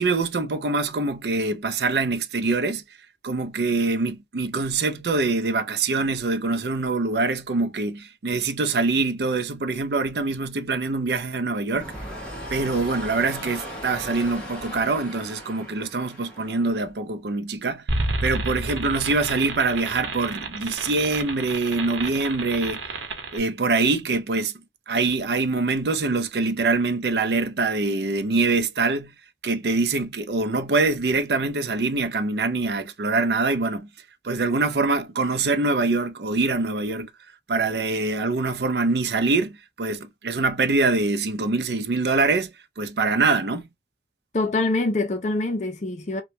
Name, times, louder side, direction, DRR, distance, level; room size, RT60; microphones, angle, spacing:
voice 1, 0.0-2.8 3.2-11.9 12.5-17.8 18.2-22.8 23.3-24.5 24.9-29.1 29.4-33.9 34.2-37.1 37.5-43.6, right 3 dB, 60° right, 0.5 m, -24 dB
sound 1, 11.7-16.9, equal, 5° left, 1.2 m, -37 dB
sound 2, 17.9-23.4, right 2 dB, 90° right, 0.9 m, -30 dB
voice 2, 44.3-46.2, left 2 dB, 40° left, 0.5 m, -24 dB
3.0 x 2.2 x 2.7 m
head